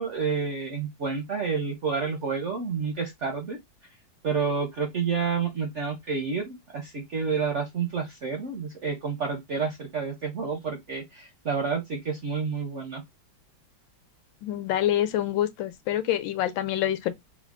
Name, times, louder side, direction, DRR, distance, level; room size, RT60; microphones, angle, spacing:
voice 1, 0.0-3.6 4.2-13.0, right 5 dB, 65° right, 0.7 m, -29 dB
voice 2, 14.4-17.1, left 12 dB, 80° left, 1.3 m, -26 dB
3.6 x 2.1 x 3.5 m
omnidirectional pair, 2.1 m